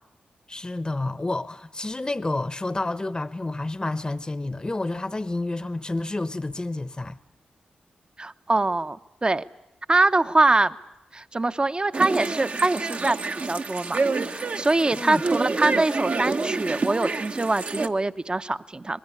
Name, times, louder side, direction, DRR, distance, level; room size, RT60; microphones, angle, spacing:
voice 1, 0.5-7.2 14.9-15.2, left 2 dB, 25° left, 1.0 m, -29 dB
voice 2, 8.2-9.4 9.9-10.8 11.1-13.2 13.4-19.0, right 2 dB, 30° right, 0.9 m, -23 dB
sound 1, 11.9-17.9, right 3 dB, 50° right, 1.1 m, -28 dB
24.5 x 20.0 x 9.8 m
cardioid pair, 55°, 3 cm